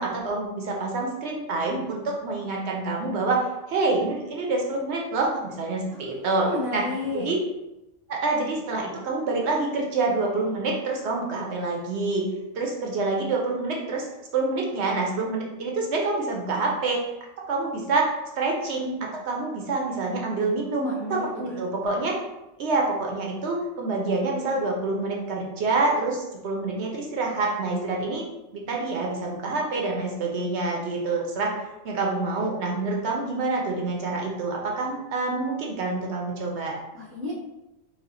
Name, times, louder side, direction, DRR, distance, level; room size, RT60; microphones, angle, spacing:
voice 1, 0.0-6.5 6.7-6.8 7.1-7.4 8.1-12.3 12.5-14.1 14.3-17.0 17.5-18.1 18.4-22.2 22.6-28.2 28.5-31.5 31.8-36.8, right 3 dB, 70° right, 0 dB, 0.9 m, -27 dB
voice 2, 5.9-7.3 20.8-21.6 36.9-37.3, left 2 dB, 15° right, -4 dB, 0.6 m, -33 dB
4.2 x 2.4 x 2.5 m, 0.94 s
omnidirectional pair, 1.2 m